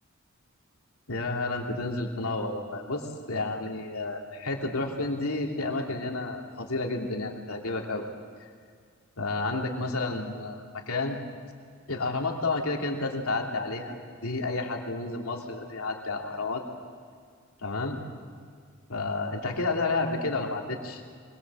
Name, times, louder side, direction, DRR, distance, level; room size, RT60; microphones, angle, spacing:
voice 1, 1.1-8.1 9.2-11.2 11.9-14.0 14.2-16.6 17.6-18.0 18.9-21.0, left 3 dB, 85° left, 1 dB, 2.9 m, -31 dB
24.5 x 21.0 x 7.5 m, 2.1 s
head